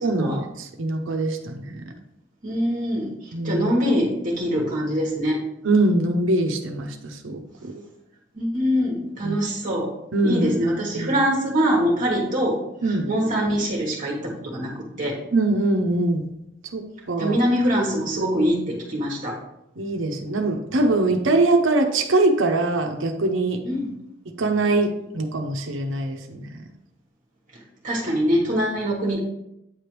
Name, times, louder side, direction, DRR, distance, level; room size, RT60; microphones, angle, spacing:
voice 1, 0.0-1.6 3.3-3.6 5.6-7.7 9.2-9.4 10.1-11.1 12.8-13.1 15.3-16.3 16.7-17.3 19.8-23.6 24.4-26.5, right 2 dB, 80° right, 4 dB, 0.8 m, -23 dB
voice 2, 2.4-3.1 3.4-5.4 8.4-9.9 10.2-12.6 12.9-15.2 17.2-19.3 23.6-23.9 27.8-29.2, equal, 40° right, -3 dB, 1.3 m, -23 dB
8.9 x 3.4 x 4.6 m, 0.83 s
head